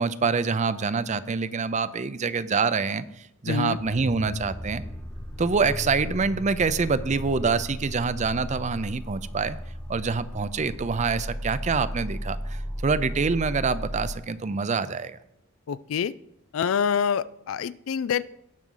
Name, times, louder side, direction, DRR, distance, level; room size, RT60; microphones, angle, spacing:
voice 1, 0.0-3.0 3.4-4.8 5.4-9.6 9.9-15.2, right 4 dB, 35° right, 14 dB, 0.5 m, -26 dB
voice 2, 3.5-3.8 15.7-16.1 16.5-18.3, left 7 dB, 75° left, 18 dB, 0.4 m, -26 dB
sound 1, 3.6-14.1, equal, 5° left, 1.0 m, -35 dB
18.0 x 6.2 x 3.9 m, 0.77 s
head